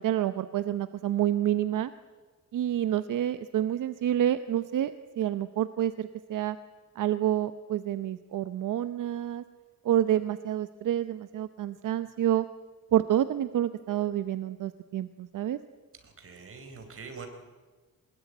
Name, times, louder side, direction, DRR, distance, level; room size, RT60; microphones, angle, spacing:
voice 1, 0.0-1.9 2.5-6.6 7.0-9.4 9.8-12.4 12.9-15.6, right 11 dB, 75° right, 12 dB, 0.8 m, -28 dB
voice 2, 16.0-17.3, right 5 dB, 45° right, 6 dB, 4.2 m, -44 dB
23.0 x 20.0 x 9.2 m, 1.3 s
wide cardioid pair, 145°, 32 cm